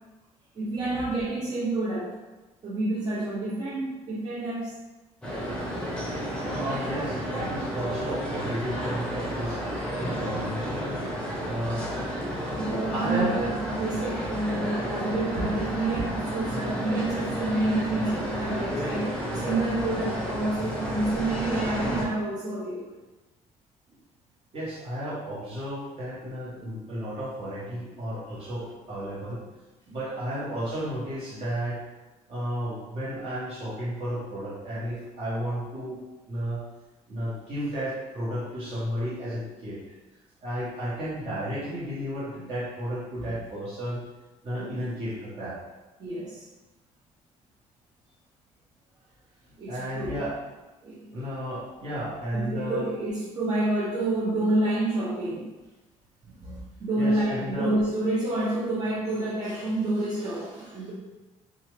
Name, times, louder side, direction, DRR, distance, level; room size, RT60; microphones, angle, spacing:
voice 1, 0.5-2.1 2.6-4.7 11.7-12.1 12.5-22.8 43.2-43.4 44.6-44.8 46.0-46.4 49.6-50.2 50.8-51.1 52.3-55.5 56.3-60.9, right 2 dB, 35° right, -8 dB, 0.6 m, -28 dB
sound 1, 5.2-22.1, equal, 5° left, 0.7 m, -32 dB
voice 2, 6.6-9.6 10.0-11.0 11.4-12.0 12.9-13.3 24.5-29.4 29.9-31.8 32.3-36.0 36.3-36.7 37.1-39.8 40.4-44.0 44.4-45.6 49.7-50.4 51.1-52.9 57.0-57.7, equal, 50° right, -8 dB, 1.4 m, -33 dB
2.7 x 2.4 x 3.1 m, 1.1 s
cardioid pair, 135°, 13 cm